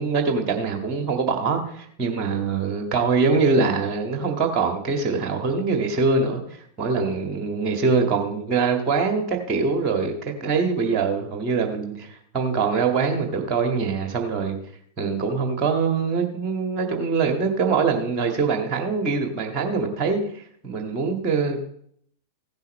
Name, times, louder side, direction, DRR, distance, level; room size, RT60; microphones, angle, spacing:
voice 1, 0.0-14.6 15.0-21.6, right 4 dB, 30° right, 4 dB, 1.8 m, -23 dB
16.0 x 10.5 x 3.2 m, 0.67 s
figure-of-eight pair, 90°, 0 cm